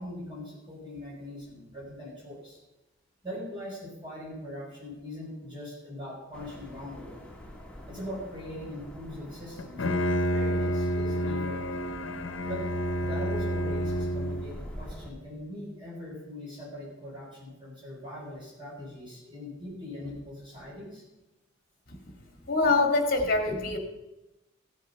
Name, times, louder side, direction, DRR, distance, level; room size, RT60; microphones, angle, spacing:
voice 1, 0.0-2.6 3.2-7.2 7.9-11.6 12.5-12.6 13.0-21.0, left 1 dB, 25° right, -5 dB, 6.0 m, -41 dB
sound 1, 6.3-15.1, left 1 dB, 5° left, 1.4 m, -46 dB
Bowed string instrument, 9.6-14.7, equal, 70° left, 0.9 m, -29 dB
voice 2, 22.5-23.8, left 3 dB, 45° left, 4 dB, 2.0 m, -24 dB
15.0 x 8.4 x 5.7 m, 1.0 s
head